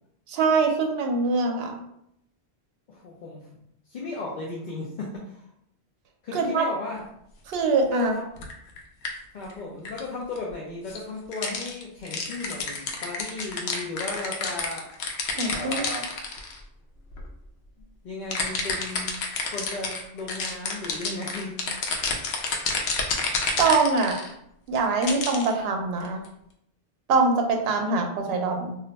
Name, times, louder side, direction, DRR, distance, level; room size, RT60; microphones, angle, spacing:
voice 1, 0.3-1.8 6.3-6.6 7.5-8.1 15.4-15.9 23.6-24.2 24.7-26.2 27.1-28.8, right 3 dB, 70° right, 4 dB, 0.8 m, -23 dB
voice 2, 2.9-3.6 3.9-5.5 6.2-7.0 7.9-8.3 9.3-14.9 15.5-16.2 18.0-19.1 19.4-21.7, left 3 dB, 55° left, -3 dB, 0.6 m, -35 dB
sound 1, 7.5-7.6 8.4-8.8 9.0-9.1 9.5-9.6 9.8-10.0 10.4-10.5 10.9-11.0 11.3-16.6 17.1-17.3 18.3-24.3 24.7-25.5 26.0-26.3, left 4 dB, 85° left, 0.9 m, -29 dB
2.4 x 2.1 x 3.9 m, 0.76 s
omnidirectional pair, 1.1 m